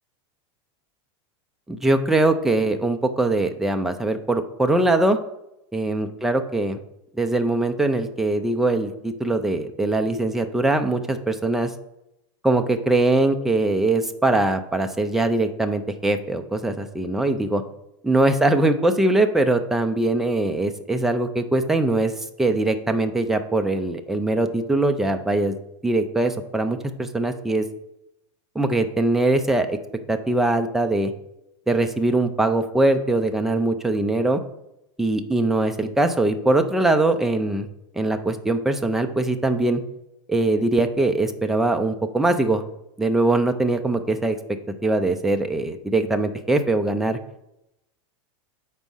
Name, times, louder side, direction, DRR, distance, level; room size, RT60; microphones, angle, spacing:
voice 1, 1.7-5.2 5.7-6.8 7.2-11.7 12.4-17.6 18.0-22.1 22.4-25.6 25.8-27.7 28.6-29.8 30.1-31.1 31.7-34.4 35.0-37.7 38.0-39.8 40.3-42.6 43.0-44.4 44.8-47.2, right 2 dB, ahead, 6 dB, 0.3 m, -22 dB
6.1 x 4.5 x 5.4 m, 0.86 s
supercardioid pair, 160°, 16 cm